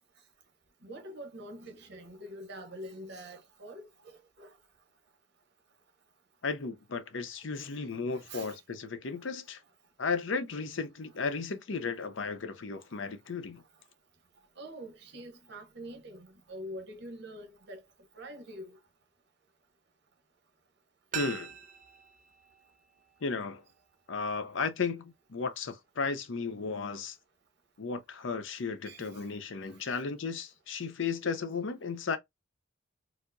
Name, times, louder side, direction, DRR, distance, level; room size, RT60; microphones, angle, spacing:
voice 1, 0.8-4.5 7.5-7.7 8.1-8.6 14.6-17.8 18.1-18.7 28.8-29.2 29.9-30.0, equal, 60° right, 0.9 m, -45 dB
voice 2, 6.4-9.6 10.0-13.6 21.1-21.5 23.2-23.6 24.1-27.2 27.8-32.2, left 4 dB, 70° left, 0.6 m, -34 dB
sound 1, 21.1-23.9 24.2-24.3, right 9 dB, 40° right, 0.5 m, -43 dB
4.5 x 2.0 x 2.6 m
head